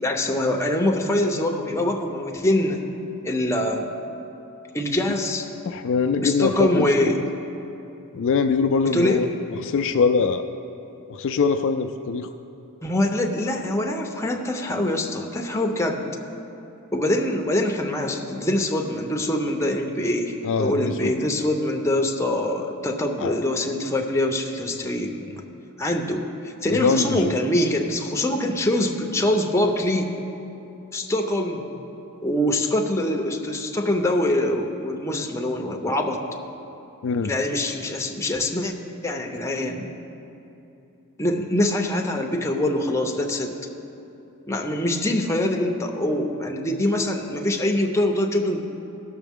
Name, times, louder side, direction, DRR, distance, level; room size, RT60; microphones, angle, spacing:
voice 1, 0.0-2.8 3.2-3.9 4.7-5.5 6.2-7.2 8.9-9.2 12.8-16.1 16.9-25.4 25.8-30.1 30.9-31.7 32.2-36.2 37.2-38.7 39.0-39.9 41.2-43.5 44.5-48.6, left 1 dB, 10° left, 2 dB, 0.7 m, -24 dB
voice 2, 5.7-6.9 8.1-9.3 9.6-10.4 11.1-12.3 20.4-21.5 23.2-23.3 26.7-27.4 37.0-37.3, left 5 dB, 60° left, 7 dB, 0.4 m, -23 dB
16.5 x 6.7 x 3.6 m, 2.9 s
head